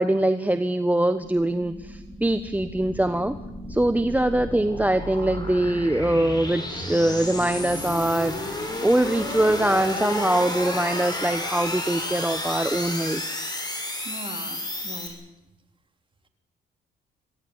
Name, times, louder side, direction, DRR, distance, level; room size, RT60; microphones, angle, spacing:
voice 1, 0.0-3.4 3.7-13.2, right 1 dB, 10° right, 10 dB, 1.1 m, -23 dB
sound 1, 1.2-15.1, left 1 dB, 20° left, 7.0 m, -32 dB
voice 2, 14.0-15.2, right 2 dB, 25° right, 6 dB, 3.6 m, -40 dB
26.0 x 16.5 x 9.8 m, 0.97 s
cardioid pair, 90°, 20 cm